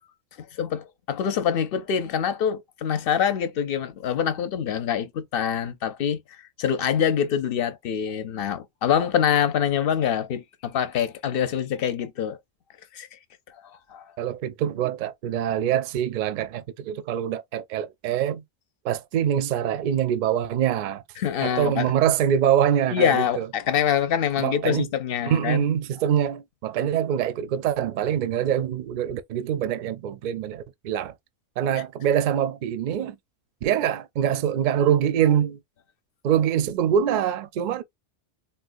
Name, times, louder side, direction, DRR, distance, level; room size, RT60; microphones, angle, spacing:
voice 1, 0.4-6.2 6.6-12.4 12.9-13.2 13.9-14.1 21.2-21.9 22.9-25.6, left 8 dB, 60° left, 0.7 m, -25 dB
voice 2, 14.2-18.4 18.8-21.0 21.4-23.5 24.4-24.9 25.2-31.1 31.6-33.2 33.6-35.6 36.2-37.8, right 9 dB, 60° right, 0.5 m, -24 dB
3.9 x 2.2 x 2.5 m
omnidirectional pair, 1.2 m